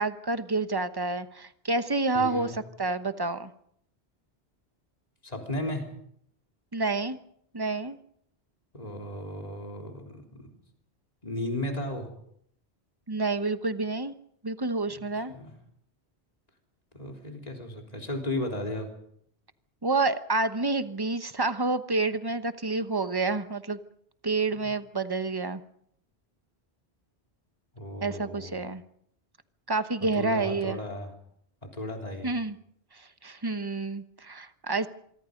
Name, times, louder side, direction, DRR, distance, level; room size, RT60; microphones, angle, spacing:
voice 1, 0.0-3.5 6.7-7.2 7.5-8.0 13.1-14.1 14.4-15.3 19.8-23.8 24.2-25.6 28.0-28.8 29.7-30.8 32.2-32.6 33.2-34.9, right 3 dB, 20° right, 11 dB, 1.0 m, -28 dB
voice 2, 2.1-2.5 5.2-5.9 8.7-10.5 11.2-12.1 15.3-15.5 16.9-18.9 24.6-24.7 27.8-28.6 30.2-31.1 31.6-32.3, left 1 dB, 35° left, 2 dB, 3.7 m, -34 dB
25.5 x 23.5 x 5.3 m, 0.70 s
omnidirectional pair, 1.1 m